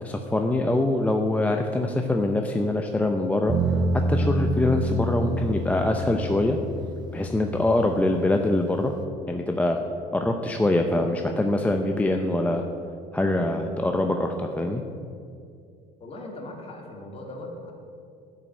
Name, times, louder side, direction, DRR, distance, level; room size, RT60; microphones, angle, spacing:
voice 1, 0.0-3.6 4.1-6.6 7.1-8.9 9.3-9.8 10.1-12.6 13.1-14.8, left 2 dB, 10° left, 4 dB, 0.6 m, -24 dB
sound 1, 3.5-9.0, right 1 dB, 25° right, 0.8 m, -28 dB
voice 2, 16.0-17.7, left 1 dB, 35° left, 0 dB, 2.4 m, -39 dB
11.0 x 6.0 x 8.0 m, 2.4 s
cardioid pair, 120°, 17 cm